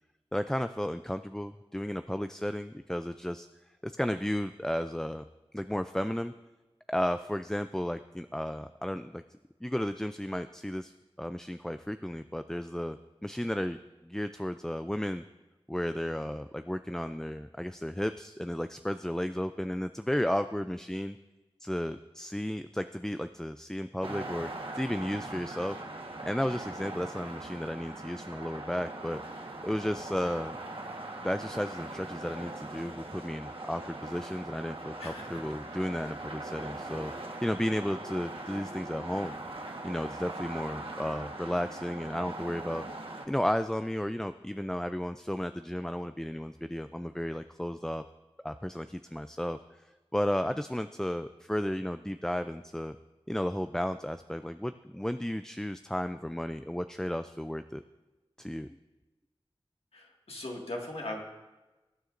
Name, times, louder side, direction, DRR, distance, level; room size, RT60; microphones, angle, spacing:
voice 1, 0.3-3.5 3.8-5.2 5.5-6.3 6.9-9.2 9.6-13.0 13.2-15.2 15.7-21.2 21.6-24.5 24.8-25.8 26.2-29.2 29.6-30.6 31.2-39.4 39.8-42.8 43.3-48.0 48.4-49.8 50.1-53.0 53.3-57.8 58.4-58.8, equal, 5° left, 9 dB, 0.3 m, -33 dB
sound 1, 24.0-43.3, right 2 dB, 65° right, 1.3 m, -41 dB
voice 2, 35.0-35.5 59.9-61.2, left 1 dB, 75° left, -1 dB, 1.9 m, -39 dB
22.0 x 9.6 x 2.6 m, 1.1 s
wide cardioid pair, 60°, 10 cm